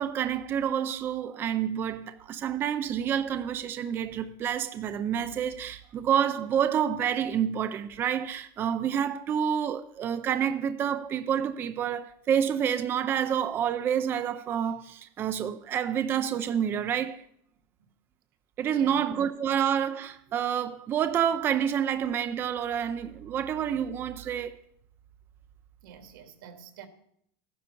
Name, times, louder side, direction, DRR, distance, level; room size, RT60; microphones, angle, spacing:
voice 1, 0.0-17.2 18.6-24.5, right 9 dB, 20° right, 0.5 m, -28 dB
voice 2, 18.7-19.0 25.8-26.9, right 8 dB, 85° right, 2.7 m, -47 dB
14.5 x 10.0 x 6.9 m
supercardioid pair, 180°, 11 cm